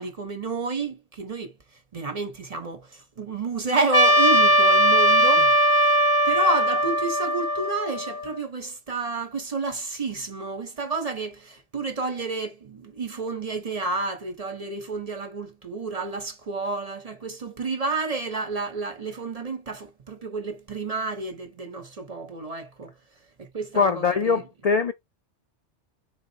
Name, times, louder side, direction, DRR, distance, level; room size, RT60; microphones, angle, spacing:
voice 1, 0.0-1.5 1.9-5.5 6.3-22.9 23.4-24.4, right 3 dB, 40° right, 0.6 m, -30 dB
Trumpet, 3.9-8.4, right 1 dB, 15° left, 0.9 m, -19 dB
voice 2, 5.2-5.6 23.7-24.9, left 5 dB, 80° left, 0.3 m, -23 dB
4.1 x 3.4 x 2.7 m
omnidirectional pair, 1.2 m